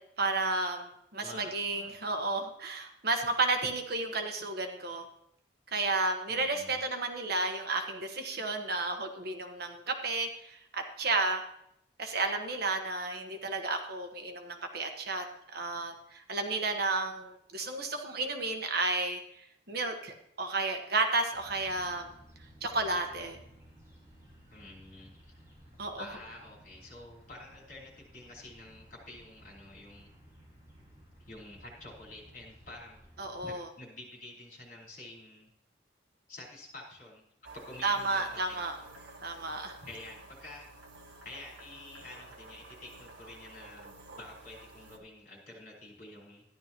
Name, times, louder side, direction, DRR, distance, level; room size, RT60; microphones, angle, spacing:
voice 1, 0.2-5.0 5.7-11.4 12.0-15.2 15.5-19.2 19.7-22.1 22.6-23.4 25.8-26.0 33.2-33.7 37.8-38.7 39.2-39.7, right 3 dB, 55° right, 4 dB, 1.2 m, -32 dB
voice 2, 1.2-1.9 6.3-6.8 24.5-25.3 25.9-30.1 31.2-33.0 33.4-35.5 36.3-37.2 37.5-39.1 39.8-40.7 41.2-46.4, left 2 dB, 45° left, -3 dB, 4.5 m, -49 dB
sound 1, 21.3-33.5, equal, 15° right, 4.9 m, -57 dB
sound 2, 37.4-45.0, right 2 dB, 70° right, 1.7 m, -51 dB
13.5 x 11.0 x 3.0 m, 0.76 s
head